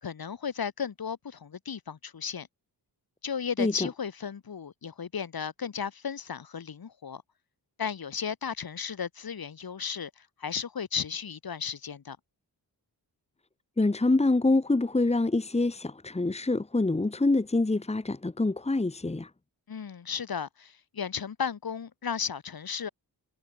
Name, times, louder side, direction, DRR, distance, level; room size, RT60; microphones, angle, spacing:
voice 1, 0.0-2.5 3.2-7.2 7.8-12.2 19.7-22.9, left 7 dB, 60° left, 5.0 m, -34 dB
voice 2, 3.6-3.9 13.8-19.3, left 2 dB, 15° left, 1.9 m, -26 dB
wide cardioid pair, 170°, 40 cm